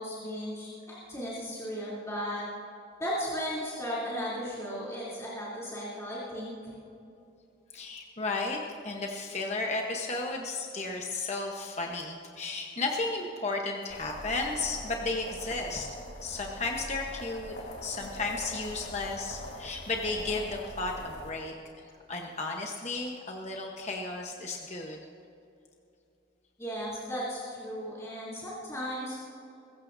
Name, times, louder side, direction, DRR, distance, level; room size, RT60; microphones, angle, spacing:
voice 1, 0.0-2.4 3.0-6.5 26.6-29.2, equal, 15° left, -9 dB, 3.1 m, -35 dB
voice 2, 7.7-8.6 8.8-15.9 16.2-17.5 17.8-21.5 22.1-25.0, left 3 dB, 35° left, 1 dB, 1.0 m, -34 dB
sound 1, 13.9-21.3, left 1 dB, 65° left, 2.4 m, -42 dB
22.0 x 14.5 x 2.7 m, 2.7 s
head